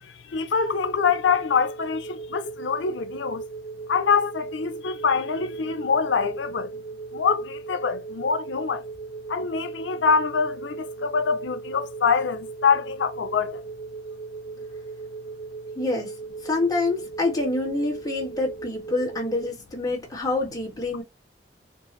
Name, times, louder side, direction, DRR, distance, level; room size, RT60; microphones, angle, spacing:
voice 1, 0.3-3.4 3.9-6.7 7.1-8.8 9.3-13.6, left 5 dB, 85° left, 0.5 m, -24 dB
sound 1, 0.6-19.5, right 4 dB, 55° left, 0.8 m, -38 dB
voice 2, 15.8-16.1 16.4-21.0, left 2 dB, 20° left, 1.7 m, -26 dB
4.5 x 2.5 x 3.0 m
head